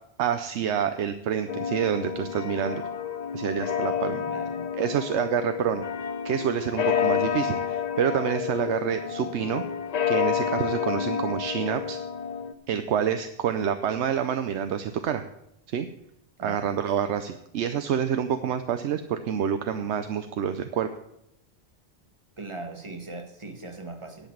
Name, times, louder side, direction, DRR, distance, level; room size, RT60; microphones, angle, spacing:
voice 1, 0.2-2.8 3.3-4.2 4.8-5.8 6.2-9.6 10.1-12.0 12.7-15.2 15.7-15.9 16.4-20.9, right 8 dB, 85° right, 9 dB, 0.9 m, -27 dB
sound 1, 1.5-12.5, left 7 dB, 50° left, 0.6 m, -29 dB
voice 2, 4.3-5.0 16.4-16.8 22.4-24.3, right 2 dB, 25° right, 6 dB, 1.3 m, -40 dB
10.0 x 5.9 x 8.5 m, 0.81 s
omnidirectional pair, 1.1 m